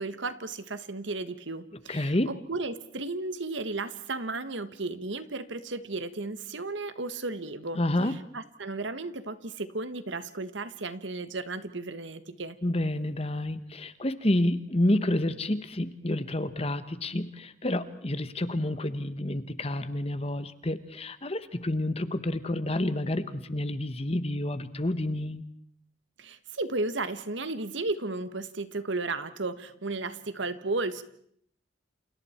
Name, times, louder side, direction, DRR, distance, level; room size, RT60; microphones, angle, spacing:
voice 1, 0.0-12.6 26.2-31.0, right 3 dB, 75° right, 12 dB, 1.5 m, -34 dB
voice 2, 1.9-2.3 7.7-8.1 12.6-25.4, left 1 dB, 30° left, 12 dB, 1.3 m, -29 dB
29.0 x 28.5 x 4.5 m, 0.65 s
head